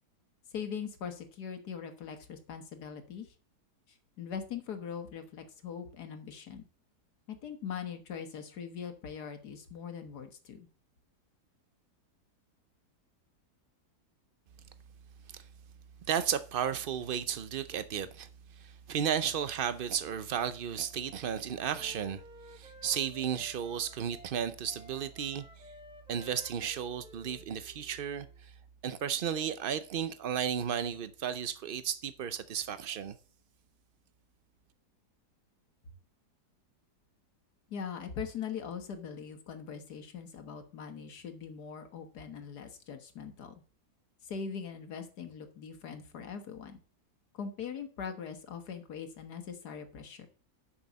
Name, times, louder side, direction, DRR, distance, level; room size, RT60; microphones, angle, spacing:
voice 1, 0.5-3.3 3.9-6.7 7.3-10.7 37.7-43.6 44.2-46.8 47.3-50.3, left 7 dB, 75° left, 1.8 m, -41 dB
voice 2, 16.1-18.3 18.6-22.2 22.5-25.4 26.1-28.5 28.8-33.2, right 8 dB, 75° right, 0.5 m, -34 dB
Wind instrument woodwind instrument, 20.8-24.3 24.6-28.4, left 1 dB, 5° right, 1.0 m, -55 dB
7.0 x 6.3 x 7.2 m
omnidirectional pair, 1.7 m